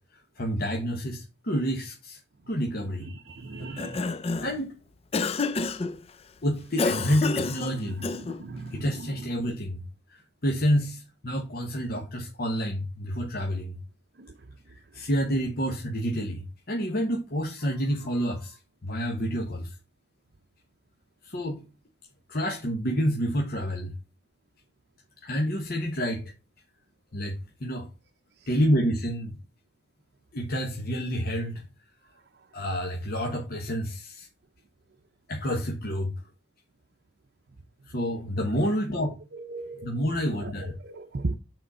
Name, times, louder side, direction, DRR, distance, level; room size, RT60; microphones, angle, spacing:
voice 1, 0.4-2.2 2.5-3.1 4.4-4.7 6.4-8.0 8.7-9.8 10.1-13.8 14.9-19.7 21.2-21.6 22.3-23.9 25.2-26.3 27.1-27.9 28.5-29.4 30.3-31.6 32.5-34.3 35.3-36.1 37.9-39.2 39.8-40.7, equal, 55° left, 1.2 m, -28 dB
voice 2, 3.3-4.0 8.1-8.8 39.5-39.9 40.4-40.5 40.8-41.4, right 2 dB, 60° right, 0.6 m, -35 dB
Cough, 3.6-4.6 5.1-5.9 6.8-8.4, left 4 dB, 30° left, 0.4 m, -29 dB
6.4 x 4.4 x 5.5 m
head